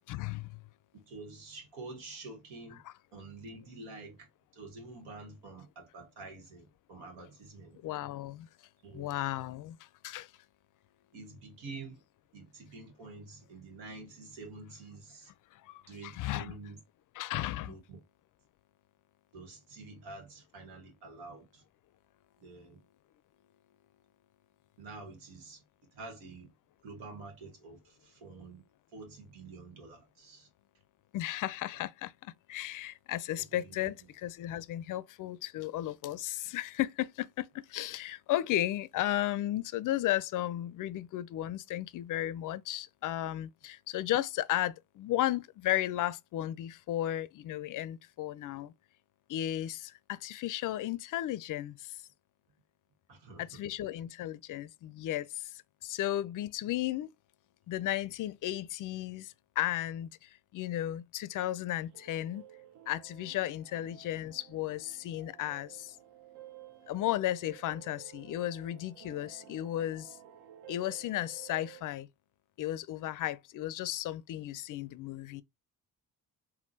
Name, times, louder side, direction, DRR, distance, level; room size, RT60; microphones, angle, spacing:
voice 1, 0.1-0.6 2.8-2.9 7.2-7.3 7.8-8.5 8.9-10.3 15.5-16.5 17.1-17.8 31.1-48.7 49.3-52.0 53.4-55.5 55.8-57.1 57.7-62.4 62.9-66.0 66.9-70.2 70.7-72.1 72.6-75.4, left 13 dB, 45° left, 0.4 m, -34 dB
voice 2, 0.9-2.8 3.1-4.3 4.5-7.8 8.8-9.1 11.1-12.0 12.3-15.3 15.9-16.8 17.6-18.0 19.3-21.6 22.4-22.8 24.8-25.6 25.9-26.5 26.8-28.6 28.9-30.5 33.3-33.9 53.1-53.6, right 3 dB, 80° right, 1.4 m, -48 dB
sound 1, 61.7-71.8, right 12 dB, 65° right, 0.7 m, -53 dB
3.5 x 2.3 x 2.7 m
hypercardioid pair, 50°, 44 cm